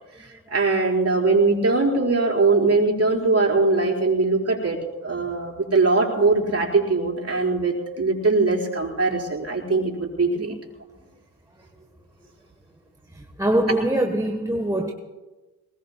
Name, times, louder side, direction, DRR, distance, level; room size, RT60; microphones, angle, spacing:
voice 1, 0.2-10.5, right 3 dB, 30° right, 4.6 m, -21 dB
voice 2, 13.1-14.9, right 1 dB, 5° right, 1.1 m, -24 dB
23.0 x 20.5 x 2.2 m
hypercardioid pair, 55°, 49 cm